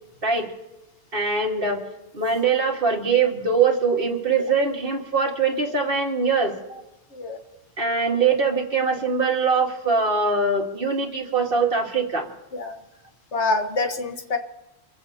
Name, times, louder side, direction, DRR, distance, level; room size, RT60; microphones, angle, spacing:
voice 1, 1.1-1.8 2.1-6.8 7.8-12.3, right 4 dB, 55° right, 1 dB, 2.1 m, -22 dB
voice 2, 13.3-14.4, left 3 dB, 85° left, 5 dB, 1.8 m, -26 dB
26.0 x 15.5 x 2.9 m, 1.0 s
omnidirectional pair, 1.1 m